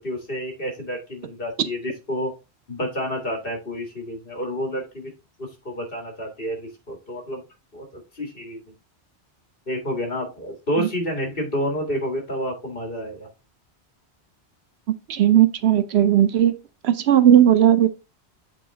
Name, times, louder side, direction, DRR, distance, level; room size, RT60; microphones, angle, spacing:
voice 1, 0.0-2.3 2.7-5.1 5.4-7.4 7.7-8.6 9.7-13.3, equal, 55° left, 2.3 m, -29 dB
voice 2, 15.1-16.5 16.8-17.9, right 11 dB, 80° right, 0.9 m, -16 dB
7.8 x 3.9 x 3.6 m
omnidirectional pair, 1.1 m